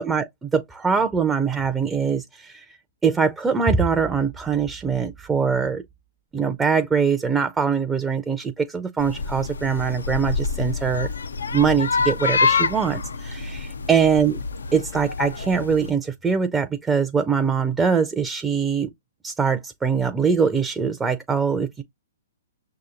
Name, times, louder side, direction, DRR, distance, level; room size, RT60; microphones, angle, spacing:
voice 1, 0.0-2.7 3.0-5.8 6.3-11.1 11.5-14.3 14.7-18.9 19.2-21.8, right 6 dB, 10° right, 0.4 m, -22 dB
sound 1, 9.0-15.9, left 4 dB, 85° left, 0.4 m, -26 dB
6.1 x 2.8 x 2.4 m
hypercardioid pair, 135°, 0 cm